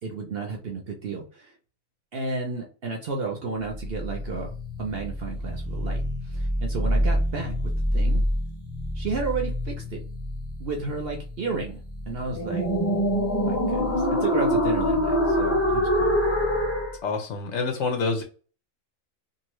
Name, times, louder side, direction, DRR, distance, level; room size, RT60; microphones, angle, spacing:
voice 1, 0.0-1.5 2.1-8.2 8.9-10.0 10.6-11.8 12.1-12.7 13.4-16.1, right 4 dB, 55° right, 1 dB, 0.7 m, -32 dB
sound 1, 3.7-16.9, equal, 15° left, 0.6 m, -26 dB
voice 2, 17.0-18.2, left 4 dB, 60° left, 4 dB, 0.9 m, -27 dB
2.7 x 2.5 x 3.0 m, 0.37 s
omnidirectional pair, 1.5 m